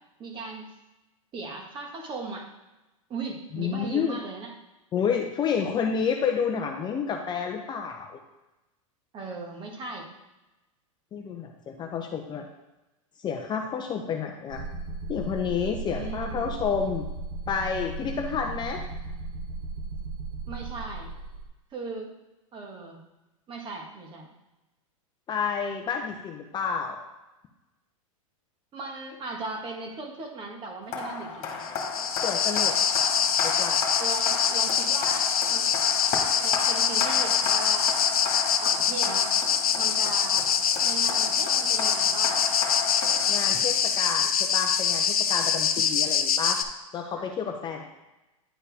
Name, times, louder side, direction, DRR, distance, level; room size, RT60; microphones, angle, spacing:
voice 1, 0.2-0.6 1.3-2.5 3.1-4.5 9.1-10.1 15.9-16.5 20.5-21.1 21.7-22.1 22.5-23.0 23.5-24.3 28.7-31.6 34.0-35.7 36.4-38.0 38.6-39.3 39.8-40.5 40.8-42.4 47.1-47.2, right 3 dB, 25° right, 2 dB, 1.6 m, -37 dB
voice 2, 3.5-4.2 4.9-8.2 11.1-12.5 13.2-14.6 15.1-17.1 17.5-18.8 25.3-27.0 32.2-32.7 33.4-33.8 43.3-46.6 46.9-47.8, left 6 dB, 25° left, 3 dB, 0.7 m, -30 dB
sound 1, 14.5-21.5, right 3 dB, 45° right, 0.9 m, -36 dB
sound 2, 30.9-43.9, left 5 dB, 40° left, 1.9 m, -33 dB
sound 3, 31.6-46.6, left 7 dB, 90° left, 0.6 m, -24 dB
10.0 x 4.3 x 3.5 m, 1.0 s
hypercardioid pair, 115°, 18 cm